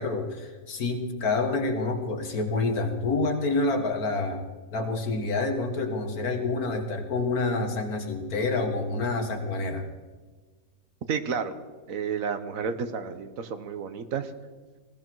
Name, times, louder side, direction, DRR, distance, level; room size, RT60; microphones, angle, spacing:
voice 1, 0.0-4.4 4.7-9.9, left 3 dB, 85° left, 5 dB, 2.2 m, -28 dB
voice 2, 11.1-11.5 11.9-14.3, right 6 dB, 70° right, 10 dB, 1.4 m, -31 dB
19.5 x 15.5 x 4.7 m, 1.4 s
omnidirectional pair, 1.5 m